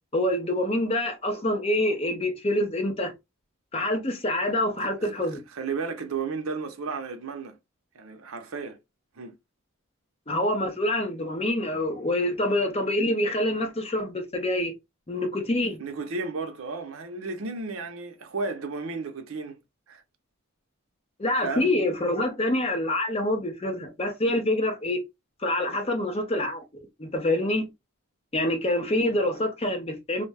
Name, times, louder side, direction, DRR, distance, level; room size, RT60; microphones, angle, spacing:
voice 1, 0.1-3.1 3.7-5.4 10.3-14.7 15.1-15.8 21.2-25.0 25.4-26.6 27.0-27.7 28.3-30.2, left 1 dB, 25° left, 0.6 m, -26 dB
voice 2, 5.5-7.6 7.9-8.8 9.2-9.3 15.8-19.6 19.9-20.0 21.4-21.7, right 4 dB, 70° right, 0.6 m, -33 dB
2.6 x 2.2 x 3.2 m
head